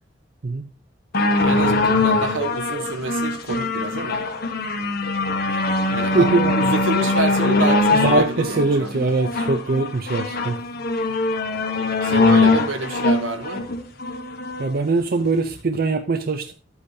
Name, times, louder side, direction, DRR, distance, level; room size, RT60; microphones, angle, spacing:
sound 1, 1.1-14.7 15.5-15.6, left 3 dB, 50° left, 1.2 m, -21 dB
voice 1, 1.4-4.2 5.9-6.3 6.6-9.1 12.0-13.6, right 3 dB, 75° right, 1.1 m, -28 dB
voice 2, 6.1-6.6 7.9-10.6 14.6-16.5, right 3 dB, 50° right, 0.6 m, -21 dB
12.0 x 8.5 x 2.8 m
head